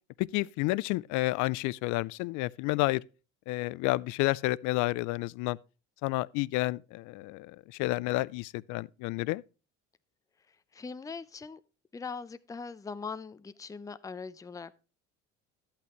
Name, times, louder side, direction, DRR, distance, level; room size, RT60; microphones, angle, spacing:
voice 1, 0.2-3.0 3.5-5.6 6.0-9.4, left 20 dB, 65° left, 0.4 m, -30 dB
voice 2, 10.7-11.6 11.9-14.7, left 5 dB, 10° left, 0.5 m, -41 dB
11.5 x 8.4 x 2.9 m
supercardioid pair, 85°, 33 cm